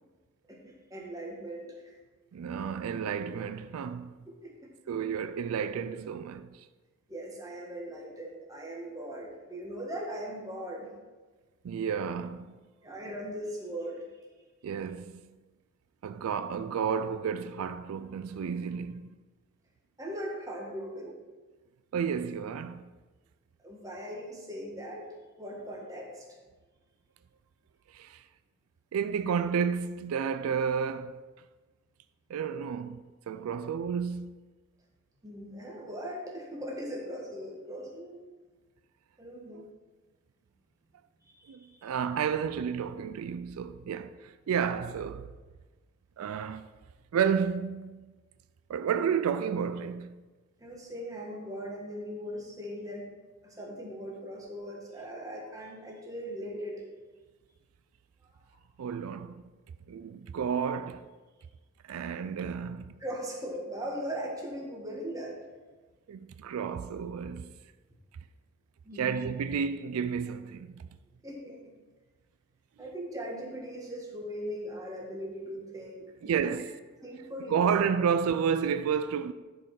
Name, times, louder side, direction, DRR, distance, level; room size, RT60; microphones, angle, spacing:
voice 1, 0.5-1.9 4.3-4.5 7.1-10.9 12.8-14.0 20.0-21.1 23.6-26.3 35.2-38.2 39.2-39.7 41.2-41.9 50.6-53.1 53.4-56.8 58.3-58.4 63.0-65.4 68.8-69.3 71.2-71.7 72.8-76.5 77.0-77.7, equal, 15° right, 1.4 m, -39 dB
voice 2, 2.3-4.2 4.9-6.7 11.6-12.5 14.6-15.2 16.0-19.1 21.9-22.9 27.9-28.2 28.9-31.3 32.3-34.4 39.5-39.7 41.5-45.3 46.2-46.7 47.1-48.1 48.7-50.2 58.8-59.4 59.9-61.1 61.8-62.9 66.1-67.6 69.0-70.9 76.2-76.7 77.5-79.3, right 7 dB, 85° right, 0.3 m, -31 dB
10.5 x 4.7 x 4.7 m
head